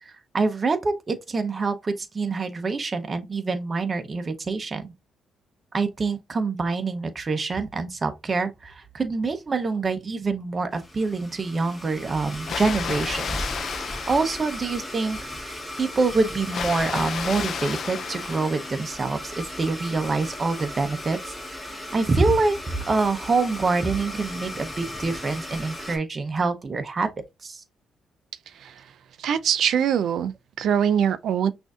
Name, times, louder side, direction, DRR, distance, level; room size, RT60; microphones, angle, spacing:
voice 1, 0.0-4.9 5.7-13.5 14.1-22.6 22.9-27.1 27.4-27.6, right 3 dB, 35° right, 0.7 m, -26 dB
Domestic sounds home sounds, 10.7-26.0, left 1 dB, ahead, 1.8 m, -36 dB
Water, 12.3-15.1 16.4-19.2, left 7 dB, 60° left, 0.4 m, -33 dB
voice 2, 28.5-28.8 29.2-31.5, right 8 dB, 70° right, 0.4 m, -23 dB
6.0 x 2.6 x 2.3 m
cardioid pair, 90°, 0 cm